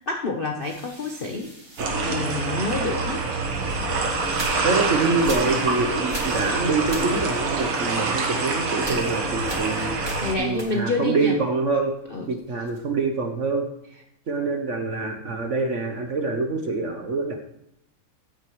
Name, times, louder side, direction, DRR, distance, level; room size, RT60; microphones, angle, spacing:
voice 1, 0.0-1.5 2.0-3.2 10.2-11.4 12.1-12.3, left 3 dB, 90° left, 2 dB, 0.4 m, -28 dB
sound 1, 0.6-2.8 3.5-11.1 11.4-13.0, equal, 10° right, 2.1 m, -40 dB
sound 2, 1.8-10.3, right 3 dB, 90° right, 2.4 m, -26 dB
voice 2, 4.6-10.0 10.4-11.9 12.3-13.6 14.3-17.4, right 3 dB, 50° right, 4 dB, 0.9 m, -25 dB
14.5 x 9.0 x 3.1 m, 0.81 s
omnidirectional pair, 2.4 m